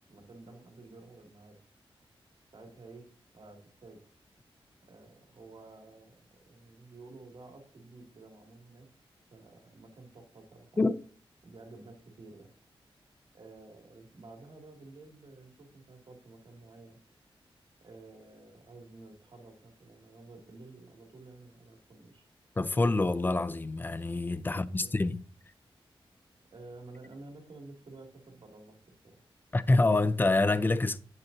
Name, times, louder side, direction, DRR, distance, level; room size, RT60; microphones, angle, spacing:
voice 1, 0.1-1.6 2.5-3.1 3.3-4.0 4.9-8.9 9.3-10.8 11.4-12.5 13.3-17.0 17.8-22.2 24.5-24.9 26.5-28.8 29.0-29.2, right 3 dB, 55° right, 2.9 m, -51 dB
voice 2, 22.6-25.2 29.5-31.0, left 2 dB, 20° left, 0.5 m, -26 dB
11.0 x 7.9 x 2.9 m
wide cardioid pair, 135°, 10 cm